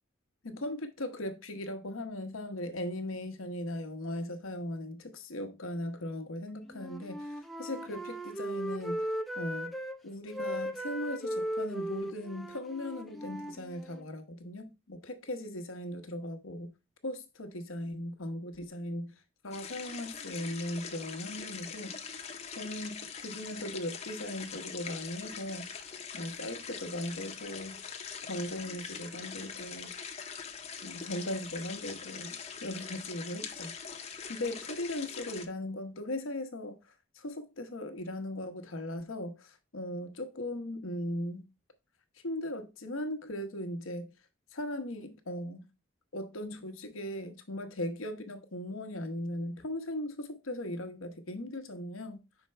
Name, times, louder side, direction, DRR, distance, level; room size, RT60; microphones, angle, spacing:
voice 1, 0.4-9.1 9.3-9.7 10.0-16.7 17.0-19.1 19.4-22.2 22.6-25.7 26.1-27.8 28.3-29.9 30.8-33.7 34.0-41.5 42.2-44.1 44.5-45.7 46.1-52.2, left 1 dB, 85° left, 1.0 m, -38 dB
Wind instrument woodwind instrument, 6.7-10.0 10.3-14.0, right 1 dB, ahead, 0.4 m, -37 dB
sound 1, 19.5-35.5, left 6 dB, 30° left, 0.7 m, -43 dB
5.6 x 4.4 x 4.2 m
head